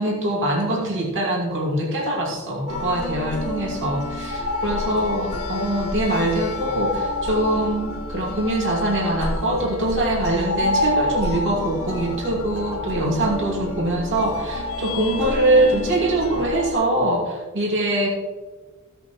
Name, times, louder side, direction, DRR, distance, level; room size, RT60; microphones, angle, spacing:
voice 1, 0.0-18.1, right 1 dB, 60° right, -2 dB, 2.5 m, -23 dB
sound 1, 2.7-16.7, left 1 dB, 80° left, 1.7 m, -28 dB
16.0 x 8.0 x 3.1 m, 1.3 s
head